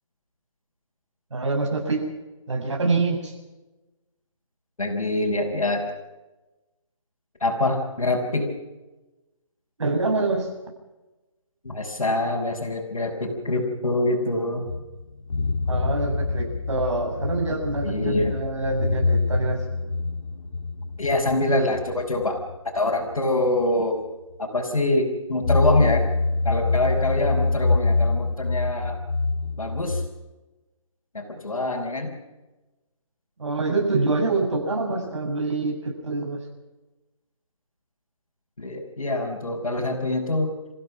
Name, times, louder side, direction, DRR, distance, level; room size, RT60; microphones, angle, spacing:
voice 1, 1.3-2.0 2.5-3.3 9.8-10.5 15.7-19.6 33.4-36.4, right 3 dB, 60° right, 2 dB, 7.3 m, -25 dB
voice 2, 4.8-5.8 7.4-8.5 11.6-14.7 17.8-18.4 21.0-22.4 22.6-24.0 24.4-26.0 26.4-29.0 29.6-30.0 31.1-32.1 38.6-40.5, left 2 dB, 85° left, -3 dB, 5.1 m, -25 dB
sound 1, 14.7-23.2 23.6-23.7 25.4-30.1, left 3 dB, 70° left, 3.1 m, -25 dB
28.5 x 16.0 x 6.1 m, 1.1 s
hypercardioid pair, 170°, 18 cm